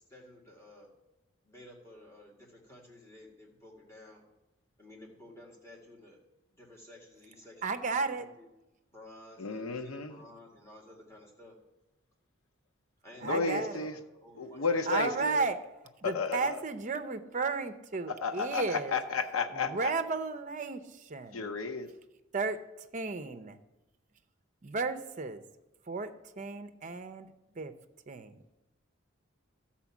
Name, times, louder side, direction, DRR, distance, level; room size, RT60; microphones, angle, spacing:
voice 1, 0.1-0.9 1.4-4.2 4.8-6.2 6.5-7.9 8.2-8.5 8.9-11.6 13.0-15.0, left 1 dB, 15° left, -2 dB, 2.0 m, -53 dB
voice 2, 7.6-8.3 13.2-13.9 14.9-15.6 16.0-19.0 19.5-21.5 22.3-22.6 22.9-23.6 24.6-25.4 25.9-27.7 28.1-28.4, right 4 dB, 40° right, 9 dB, 0.6 m, -34 dB
voice 3, 9.4-10.2 13.2-14.0 14.4-15.4 16.0-16.6 18.1-19.9 21.3-21.9, left 4 dB, 90° left, 7 dB, 0.8 m, -32 dB
13.0 x 4.4 x 7.2 m, 0.98 s
head